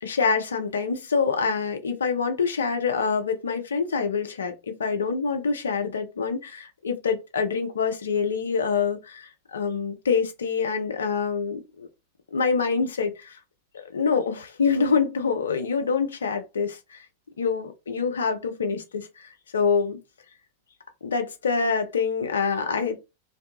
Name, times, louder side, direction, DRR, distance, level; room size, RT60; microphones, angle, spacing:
voice 1, 0.0-11.9 12.3-13.4 13.7-17.0 17.4-20.0 21.0-23.0, left 5 dB, 70° left, 0.5 m, -26 dB
2.6 x 2.2 x 2.7 m
figure-of-eight pair, 90°, 0 cm